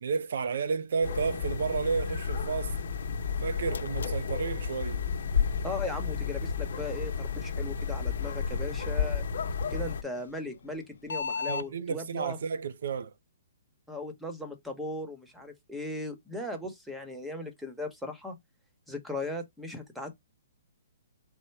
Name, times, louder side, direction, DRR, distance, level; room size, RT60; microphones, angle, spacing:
voice 1, 0.0-2.7 3.4-5.0 11.5-13.1, right 5 dB, 70° right, 0.5 m, -31 dB
sound 1, 1.0-10.0, left 6 dB, 60° left, 0.9 m, -32 dB
sound 2, 3.5-11.7, left 5 dB, 85° left, 0.4 m, -43 dB
voice 2, 5.6-9.3 9.7-12.4 13.9-18.3 18.9-20.2, left 2 dB, ahead, 1.0 m, -38 dB
4.3 x 2.1 x 4.5 m
hypercardioid pair, 155°, 0 cm